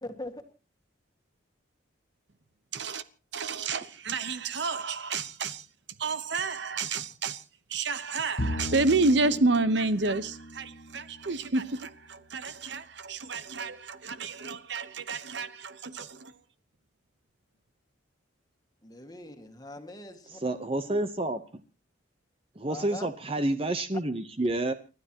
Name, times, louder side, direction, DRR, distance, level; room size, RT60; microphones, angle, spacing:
voice 1, 0.0-0.4 18.8-20.4 22.7-23.1, left 1 dB, 20° left, 1.8 m, -41 dB
voice 2, 2.7-3.0 3.3-5.7 6.0-7.4 7.7-16.3, right 3 dB, 65° right, 1.0 m, -30 dB
Bowed string instrument, 8.4-11.9, equal, 45° left, 1.3 m, -37 dB
voice 3, 20.3-21.4 22.6-24.7, right 2 dB, 30° right, 0.8 m, -29 dB
30.0 x 12.5 x 2.9 m
head